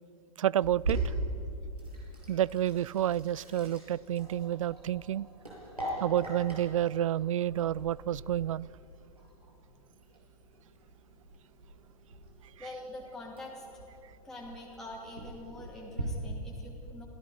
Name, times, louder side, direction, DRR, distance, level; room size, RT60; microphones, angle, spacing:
voice 1, 0.4-1.1 2.3-5.3 6.0-8.7, right 12 dB, 60° right, 25 dB, 0.4 m, -29 dB
Sink (filling or washing), 0.6-16.0, right 2 dB, 85° right, 7.2 m, -41 dB
voice 2, 12.6-13.7 14.2-17.1, left 1 dB, ahead, -4 dB, 2.7 m, -45 dB
27.0 x 16.5 x 6.4 m, 2.7 s
figure-of-eight pair, 100°, 20 cm